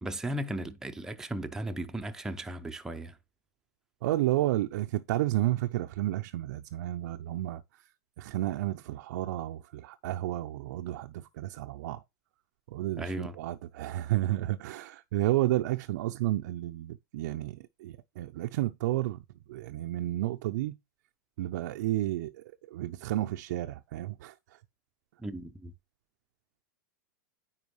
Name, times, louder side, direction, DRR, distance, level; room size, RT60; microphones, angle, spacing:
voice 1, 0.0-3.2 13.0-13.3 25.2-25.7, right 1 dB, 5° right, 0.7 m, -36 dB
voice 2, 4.0-7.8 8.2-12.0 12.7-20.8 21.4-24.6, right 15 dB, 65° right, 0.6 m, -31 dB
9.7 x 4.5 x 3.1 m
hypercardioid pair, 120°, 11 cm